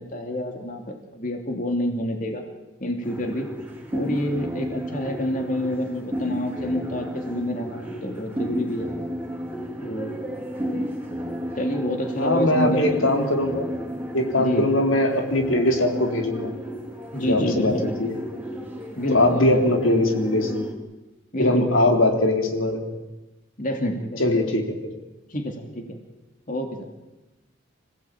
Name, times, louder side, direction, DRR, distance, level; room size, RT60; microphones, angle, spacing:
voice 1, 0.0-2.4 2.8-3.5 3.9-8.9 9.8-10.2 11.6-12.8 14.4-14.7 17.1-17.9 19.0-19.6 21.3-21.8 23.6-24.4 25.3-26.0 26.5-26.8, left 1 dB, 40° left, 3 dB, 3.0 m, -28 dB
sound 1, 3.0-20.7, equal, 10° right, 4.3 m, -32 dB
voice 2, 12.2-13.7 14.1-16.5 17.2-17.7 18.0-18.2 19.1-20.6 21.4-22.9 24.2-24.7, left 1 dB, 85° left, 3 dB, 3.7 m, -21 dB
27.5 x 17.0 x 8.9 m, 1.1 s
head